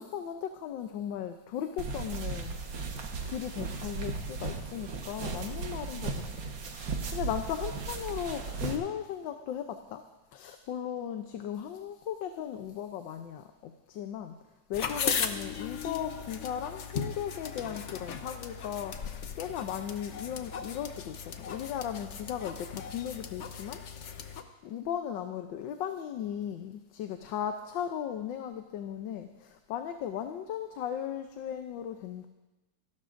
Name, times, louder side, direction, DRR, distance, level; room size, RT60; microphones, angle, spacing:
voice 1, 0.0-2.8 3.2-6.5 6.8-10.0 10.3-14.4 14.7-24.2 24.6-32.3, left 9 dB, 90° left, 6 dB, 1.4 m, -37 dB
sound 1, 1.8-8.8, right 4 dB, 75° right, 2.0 m, -36 dB
sound 2, 14.7-24.4, left 6 dB, 55° left, 0.9 m, -37 dB
28.0 x 12.0 x 2.6 m, 1.1 s
omnidirectional pair, 2.0 m